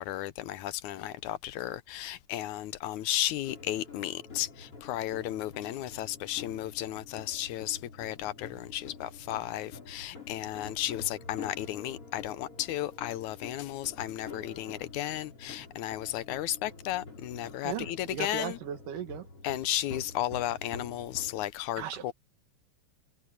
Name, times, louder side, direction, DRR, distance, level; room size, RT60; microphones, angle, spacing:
voice 1, 0.0-18.6 19.4-22.1, left 13 dB, 75° left, 2.1 m, -34 dB
sound 1, 3.4-21.5, left 4 dB, 45° left, 6.0 m, -47 dB
voice 2, 17.6-19.3 21.8-22.1, right 9 dB, 85° right, 3.2 m, -37 dB
omnidirectional pair, 3.6 m